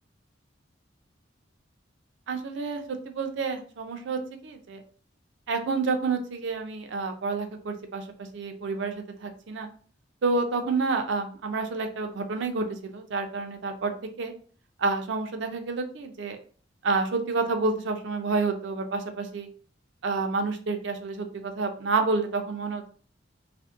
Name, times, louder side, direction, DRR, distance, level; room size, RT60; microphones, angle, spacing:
voice 1, 2.3-4.8 5.5-8.0 8.3-9.7 10.2-13.9 14.2-14.3 14.8-16.4 16.8-19.5 20.0-22.9, right 4 dB, 70° right, 6 dB, 0.4 m, -29 dB
2.6 x 2.1 x 2.4 m, 0.43 s
head